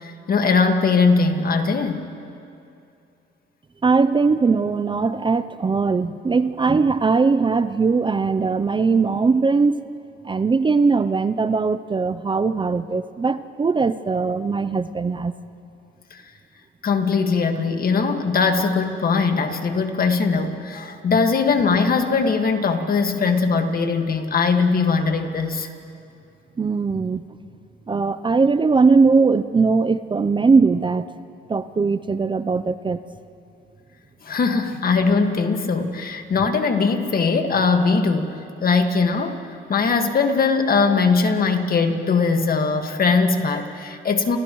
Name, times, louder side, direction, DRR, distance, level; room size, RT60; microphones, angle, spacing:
voice 1, 0.0-2.0 16.8-25.7 34.3-38.3 38.6-39.4 39.7-44.4, left 4 dB, 50° left, 5 dB, 1.8 m, -20 dB
voice 2, 3.8-9.8 10.2-15.3 26.6-27.2 27.9-31.1 31.5-33.0, right 4 dB, 25° right, 13 dB, 0.5 m, -20 dB
30.0 x 29.0 x 3.1 m, 2.6 s
cardioid pair, 90°, 20 cm